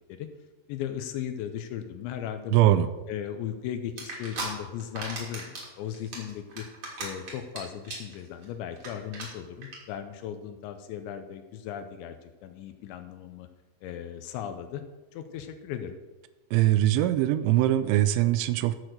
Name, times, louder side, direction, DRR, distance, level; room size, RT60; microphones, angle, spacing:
voice 1, 0.7-2.7 3.1-6.7 7.0-13.5 13.8-14.8 15.1-16.0, left 10 dB, 80° left, 8 dB, 2.9 m, -37 dB
voice 2, 2.5-2.9 16.5-18.8, right 14 dB, 80° right, 12 dB, 3.0 m, -22 dB
sound 1, 4.0-4.5 4.8-5.6 5.9-7.6 7.8-8.1 8.4-8.5 8.8-8.9 9.1-9.2 9.6-9.7, right 3 dB, 40° right, 3.9 m, -36 dB
15.0 x 6.3 x 6.5 m, 1.1 s
omnidirectional pair, 5.6 m